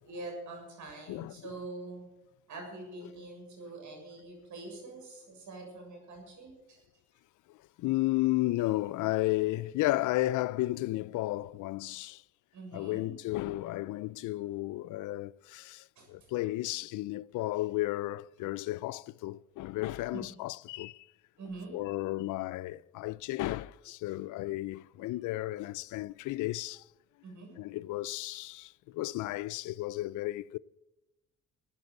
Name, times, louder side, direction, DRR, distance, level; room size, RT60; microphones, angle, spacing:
voice 1, 0.0-2.1 2.5-6.8 12.5-13.2 16.0-16.1 20.1-20.3 21.4-21.7 27.2-27.5, right 2 dB, 75° right, 6.9 m, -44 dB
voice 2, 1.1-1.5 7.5-12.2 12.7-21.1 21.7-26.9 27.6-30.6, left 17 dB, 80° left, 0.5 m, -33 dB
16.0 x 8.8 x 7.6 m
cardioid pair, 90°, 30 cm